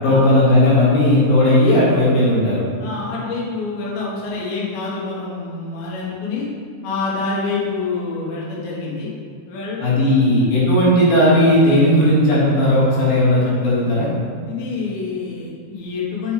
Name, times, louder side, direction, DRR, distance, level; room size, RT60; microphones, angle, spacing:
voice 1, 0.0-2.6 9.8-14.1, left 1 dB, 60° left, -7 dB, 3.4 m, -15 dB
voice 2, 2.8-6.5 6.8-9.1 9.5-10.3 14.5-16.3, left 4 dB, 85° left, -6 dB, 3.7 m, -27 dB
7.9 x 7.0 x 3.3 m, 2.2 s
omnidirectional pair, 5.0 m